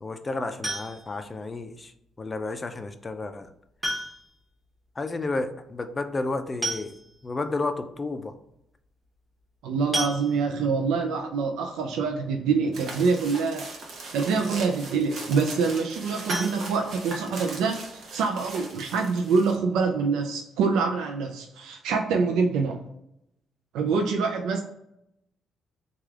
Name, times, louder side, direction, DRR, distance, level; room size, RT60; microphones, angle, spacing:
voice 1, 0.0-1.9 2.2-3.5 5.0-6.9 7.2-8.4, left 3 dB, 25° left, 8 dB, 0.4 m, -31 dB
sound 1, 0.6-1.3 2.7-2.8 3.8-4.4 4.7-4.8 5.1-5.2 6.2-6.3 6.6-7.3 7.9-8.0 8.3-8.5 9.9-10.8 16.2-17.5 17.8-17.9 18.4-18.5 18.8-18.9, right 1 dB, 10° right, 1.0 m, -33 dB
voice 2, 9.6-13.7 14.1-22.8 23.7-24.6, right 5 dB, 90° right, 3 dB, 0.3 m, -25 dB
sound 2, 12.7-19.6, right 2 dB, 65° right, 0.8 m, -39 dB
3.2 x 2.3 x 3.5 m, 0.80 s
cardioid pair, 90°, 0 cm